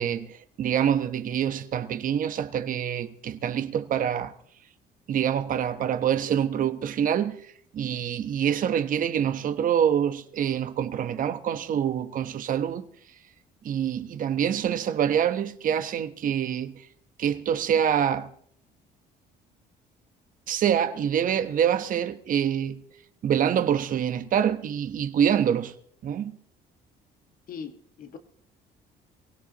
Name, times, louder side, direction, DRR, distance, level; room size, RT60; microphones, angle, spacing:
voice 1, 0.0-4.3 5.1-12.9 13.6-16.9 17.2-18.3 20.5-22.8 23.2-25.7 26.0-26.3, right 9 dB, 55° right, 1.1 m, -26 dB
voice 2, 27.5-28.2, left 6 dB, 55° left, 1.7 m, -40 dB
23.5 x 17.0 x 3.0 m
cardioid pair, 110°, 17 cm